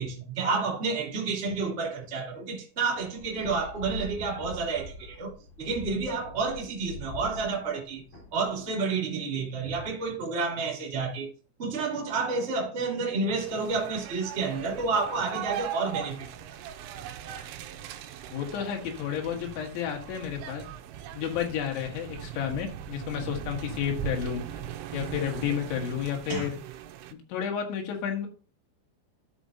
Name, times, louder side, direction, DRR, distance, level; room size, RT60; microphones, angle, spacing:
voice 1, 0.0-5.3 5.6-8.0 8.3-11.3 11.6-16.6 26.3-26.5, right 4 dB, 35° right, 1.0 m, -30 dB
sound 1, 3.2-8.6, left 3 dB, 45° left, 5.3 m, -43 dB
sound 2, 13.4-27.1, right 9 dB, 85° right, 3.2 m, -39 dB
voice 2, 18.3-20.6 21.1-24.4 24.9-26.6 27.3-28.3, left 9 dB, 70° left, 3.7 m, -31 dB
13.0 x 5.2 x 2.7 m
omnidirectional pair, 5.7 m